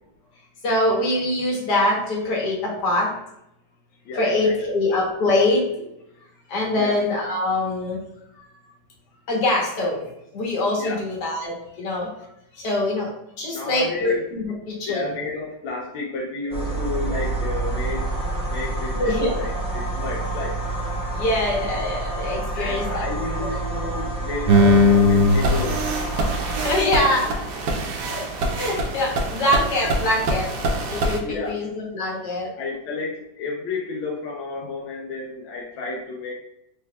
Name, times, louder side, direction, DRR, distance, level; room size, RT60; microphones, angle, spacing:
voice 1, 0.6-3.1 4.1-5.6 6.5-8.0 8.4-8.5 9.3-12.1 12.5-13.1 13.4-15.2 18.9-19.3 21.1-23.0 23.4-23.5 26.5-27.4 28.1-28.2 28.6-30.5 30.9-32.5, left 1 dB, 60° left, -3 dB, 1.6 m, -24 dB
voice 2, 4.1-4.5 6.7-7.0 10.8-11.0 13.5-14.2 14.9-18.1 18.5-20.6 22.6-25.8 26.2-26.4 31.2-31.6 32.6-36.3, left 3 dB, 85° left, -2 dB, 1.4 m, -31 dB
sound 1, 16.5-26.8, right 2 dB, 10° right, 0.4 m, -28 dB
sound 2, 24.5-31.2, left 1 dB, 70° right, 1.0 m, -21 dB
4.1 x 3.3 x 2.2 m, 0.83 s
omnidirectional pair, 2.1 m